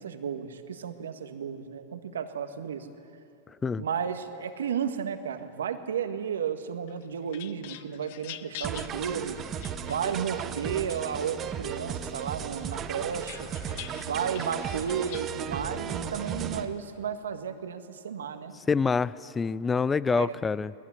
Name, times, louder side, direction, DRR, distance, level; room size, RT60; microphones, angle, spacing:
voice 1, 0.0-2.9 3.8-9.4 9.8-13.5 14.0-18.5 20.1-20.3, right 7 dB, 80° right, 8 dB, 1.7 m, -33 dB
voice 2, 3.5-3.9 18.5-20.7, left 5 dB, 15° left, 20 dB, 0.5 m, -27 dB
sound 1, 6.9-10.4 10.9-11.8 12.2-15.3, left 13 dB, 60° left, 1.0 m, -46 dB
sound 2, 8.6-16.7, right 8 dB, 30° right, 1.4 m, -35 dB
20.5 x 20.0 x 9.7 m, 2.4 s
hypercardioid pair, 105°, 0 cm